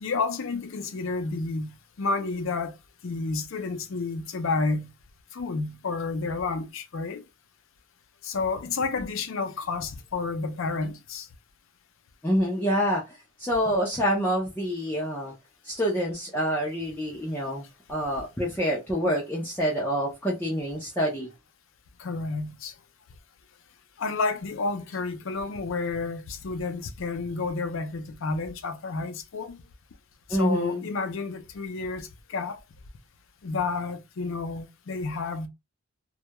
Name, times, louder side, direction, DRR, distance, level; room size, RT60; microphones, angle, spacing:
voice 1, 0.0-2.8 3.0-4.9 5.3-7.2 8.2-11.3 22.0-22.7 24.0-29.6 30.3-32.6 33.4-35.5, left 4 dB, 60° left, 0.5 m, -30 dB
voice 2, 12.2-15.3 15.6-21.3 30.3-30.9, equal, 10° left, 0.5 m, -27 dB
2.2 x 2.1 x 2.8 m
head